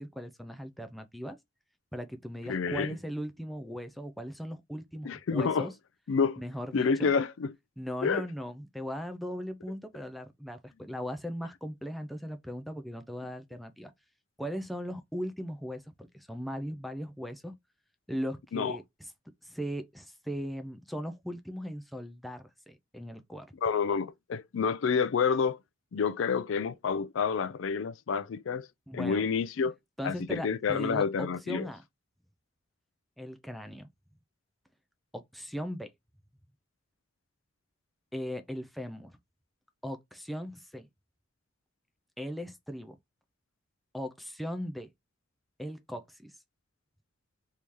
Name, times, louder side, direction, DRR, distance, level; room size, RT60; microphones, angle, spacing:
voice 1, 0.0-1.4 1.9-5.7 6.4-7.1 7.8-13.9 14.4-17.5 18.1-19.1 19.4-23.5 28.9-29.2 30.0-31.8 33.2-33.9 35.1-35.9 38.1-39.2 39.8-40.9 42.2-43.0 43.9-44.9 45.6-46.3, equal, ahead, 0.4 m, -38 dB
voice 2, 2.5-2.9 5.0-5.7 6.1-6.4 6.7-7.5 8.0-8.2 18.5-18.7 23.6-25.6 25.9-28.7 28.9-29.7 30.0-31.7, left 5 dB, 70° left, 0.4 m, -28 dB
3.1 x 2.7 x 3.5 m
head